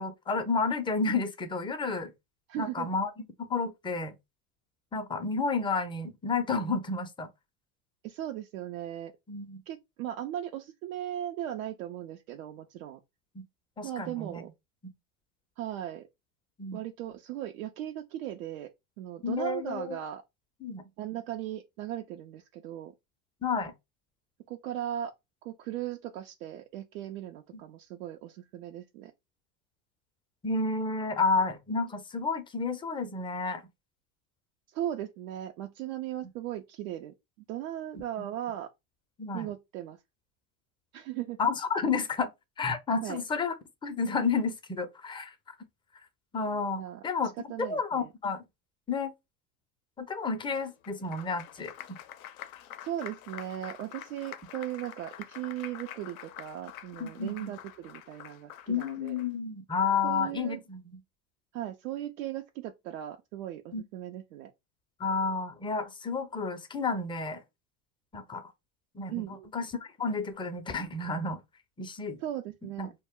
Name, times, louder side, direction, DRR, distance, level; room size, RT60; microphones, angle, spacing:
voice 1, 0.0-2.1 2.6-3.1 3.4-4.1 4.9-7.3 9.3-9.6 13.3-13.4 13.8-14.4 16.6-16.8 19.2-20.0 20.6-20.8 23.4-23.7 30.4-33.6 37.9-38.3 39.2-39.5 41.4-42.3 42.6-43.5 43.8-45.3 46.3-48.4 48.9-49.1 50.0-51.7 57.0-57.5 58.7-61.0 63.7-63.8 65.0-67.4 68.1-68.5 68.9-71.4 71.8-72.2 72.8-72.9, left 4 dB, 10° left, 0.5 m, -31 dB
voice 2, 2.5-2.9 8.0-9.1 9.7-13.0 13.8-14.5 15.6-16.1 16.7-18.7 19.0-20.2 21.0-22.9 24.5-25.1 25.4-29.1 34.7-37.1 37.5-38.7 39.3-40.0 40.9-41.4 43.0-43.2 46.8-47.0 47.5-48.1 52.8-59.2 60.0-60.6 61.5-64.5 69.1-69.5 72.2-72.9, right 12 dB, 75° right, 0.5 m, -37 dB
Applause, 50.5-59.3, left 11 dB, 80° left, 0.5 m, -46 dB
2.1 x 2.1 x 3.5 m
hypercardioid pair, 90°, 41 cm